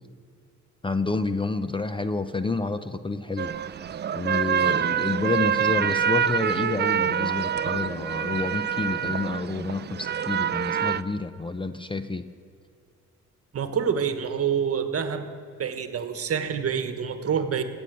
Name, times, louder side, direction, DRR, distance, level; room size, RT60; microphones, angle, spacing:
voice 1, 0.8-12.3, left 3 dB, 15° left, 11 dB, 0.6 m, -29 dB
sound 1, 3.4-11.0, right 8 dB, 35° right, 0.4 m, -26 dB
voice 2, 13.5-15.3 15.6-17.6, right 7 dB, 50° right, 8 dB, 1.4 m, -27 dB
17.0 x 7.1 x 8.4 m, 2.5 s
cardioid pair, 90°, 30 cm